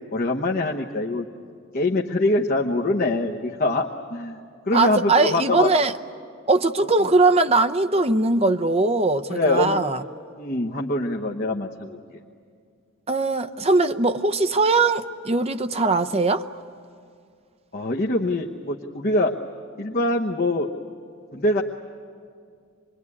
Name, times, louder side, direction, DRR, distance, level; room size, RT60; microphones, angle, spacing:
voice 1, 0.1-1.3 1.7-4.4 4.6-5.7 7.0-7.1 9.3-9.8 10.4-12.0 17.7-19.3 19.8-20.7 21.3-21.6, left 2 dB, 40° left, 1.0 m, -24 dB
voice 2, 4.7-5.9 6.5-10.0 13.1-16.4, right 3 dB, 30° right, 0.7 m, -20 dB
26.0 x 22.0 x 9.8 m
head